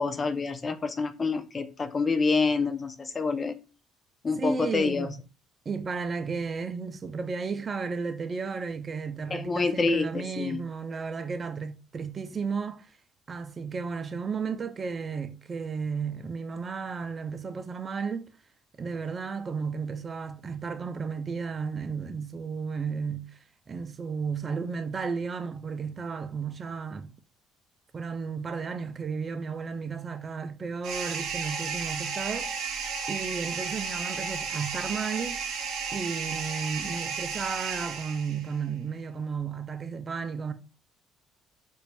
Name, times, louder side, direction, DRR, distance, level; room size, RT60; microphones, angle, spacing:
voice 1, 0.0-3.6 4.2-5.1 9.3-10.6, left 4 dB, 35° left, 0.5 m, -27 dB
voice 2, 4.4-5.2 5.7-12.9 13.3-18.3 18.8-23.4 23.7-27.1 27.9-32.5 33.1-35.5 35.9-40.5, right 5 dB, 40° right, 0.5 m, -33 dB
sound 1, 30.8-38.6, right 5 dB, 70° right, 0.9 m, -33 dB
4.5 x 2.6 x 2.2 m
hypercardioid pair, 60°, 0 cm